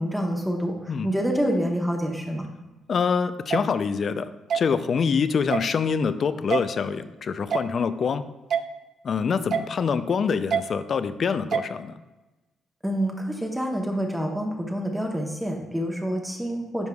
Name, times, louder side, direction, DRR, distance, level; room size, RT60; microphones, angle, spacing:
voice 1, 0.0-2.4 12.8-16.9, equal, 5° right, 1 dB, 0.9 m, -27 dB
voice 2, 2.9-8.2 9.0-12.0, left 6 dB, 50° left, 12 dB, 0.4 m, -25 dB
sound 1, 3.5-3.6 4.5-4.6 5.5-5.7 6.5-6.6 7.5-7.7 8.5-8.6 9.5-9.7 10.5-10.6 11.5-11.7, right 7 dB, 60° right, 0.4 m, -24 dB
10.5 x 4.7 x 2.3 m, 1.1 s
cardioid pair, 90°, 0 cm